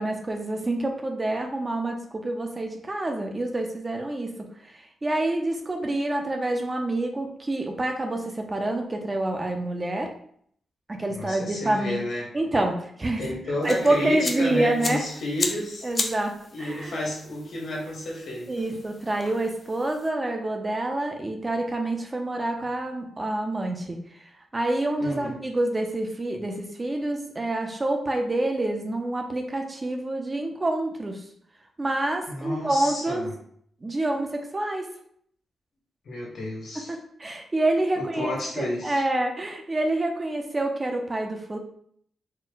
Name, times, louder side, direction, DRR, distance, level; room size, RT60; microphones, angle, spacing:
voice 1, 0.0-4.3 4.6-10.1 10.9-12.0 12.3-13.2 13.6-15.0 15.8-17.1 18.5-31.2 31.8-33.3 33.8-34.9 36.9-41.6, right 2 dB, 25° right, 3 dB, 0.5 m, -27 dB
voice 2, 11.1-12.3 13.2-15.9 16.5-18.5 25.0-25.4 32.3-33.3 36.0-36.9 38.0-39.0, left 1 dB, 70° left, -3 dB, 1.5 m, -31 dB
sound 1, 13.6-20.1, left 3 dB, 35° left, 0.5 m, -36 dB
4.2 x 2.1 x 3.9 m, 0.64 s
wide cardioid pair, 125°, 0 cm